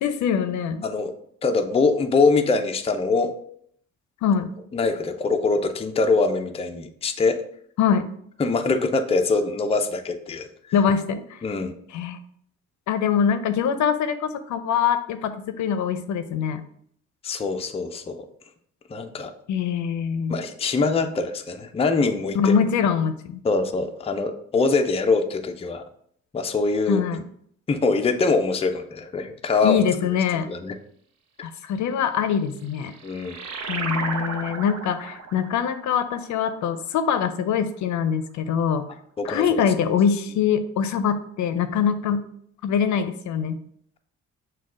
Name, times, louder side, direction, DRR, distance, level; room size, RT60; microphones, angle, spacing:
voice 1, 0.0-0.8 4.2-4.5 7.8-8.1 10.7-11.4 11.9-12.2 12.9-16.6 19.5-20.4 22.3-23.4 26.9-27.2 29.6-30.5 31.4-32.9 33.7-38.9 39.2-42.2 42.6-43.6, left 7 dB, 70° left, 10 dB, 0.5 m, -23 dB
voice 2, 1.4-3.3 4.7-7.4 8.4-10.5 11.4-11.7 17.2-18.3 18.9-19.3 20.3-22.5 23.4-25.8 26.3-27.0 27.7-29.8 30.5-30.7 33.0-33.4 39.2-39.4, left 3 dB, 20° left, 6 dB, 0.4 m, -23 dB
sound 1, 32.4-37.5, right 4 dB, 60° right, 0.7 m, -34 dB
6.1 x 2.3 x 3.7 m, 0.65 s
cardioid pair, 90°, 30 cm